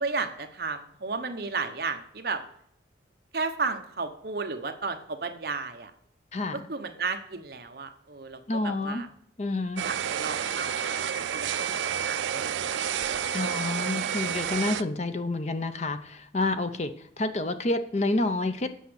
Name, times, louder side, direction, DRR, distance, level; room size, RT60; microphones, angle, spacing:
voice 1, 0.0-2.4 3.3-5.9 6.7-9.1 9.8-12.9, right 4 dB, 55° right, 6 dB, 0.9 m, -33 dB
voice 2, 6.3-6.7 8.5-9.0 9.4-9.8 13.3-18.7, left 2 dB, 35° left, 9 dB, 0.6 m, -29 dB
sound 1, 9.8-14.8, right 8 dB, 80° right, 0.4 m, -30 dB
8.2 x 5.8 x 7.8 m, 0.66 s
head